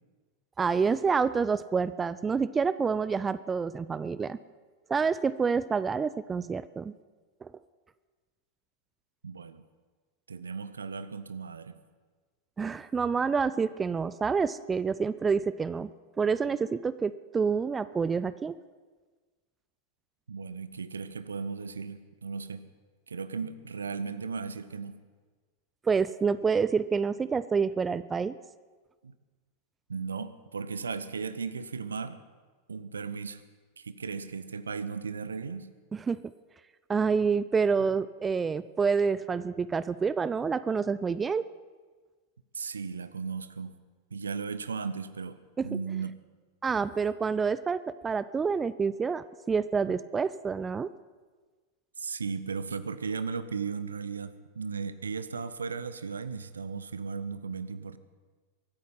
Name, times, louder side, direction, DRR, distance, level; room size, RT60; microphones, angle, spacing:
voice 1, 0.6-4.4 4.9-7.0 7.4-7.5 12.6-15.9 16.2-18.5 25.9-28.4 35.9-36.2 36.9-41.5 45.6-45.7 46.6-50.9, right 5 dB, 15° right, 16 dB, 0.4 m, -28 dB
voice 2, 9.2-9.6 10.3-11.8 20.3-22.6 23.1-25.0 29.0-29.1 29.9-32.2 32.7-33.4 33.8-35.7 42.5-43.8 44.1-45.4 45.6-46.1 49.9-50.0 52.0-58.0, right 5 dB, 70° right, 14 dB, 0.7 m, -36 dB
22.5 x 9.4 x 5.7 m, 1.4 s
figure-of-eight pair, 90°, 0 cm